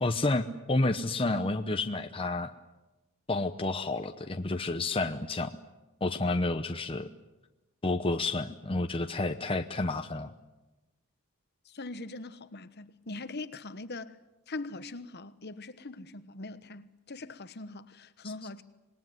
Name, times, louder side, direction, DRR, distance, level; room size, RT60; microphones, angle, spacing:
voice 1, 0.0-2.5 3.3-5.5 6.0-7.1 7.8-10.3, left 2 dB, 25° left, 0.9 m, -30 dB
voice 2, 11.6-14.2 14.5-18.6, left 2 dB, 50° left, 1.2 m, -42 dB
26.5 x 20.0 x 9.5 m
head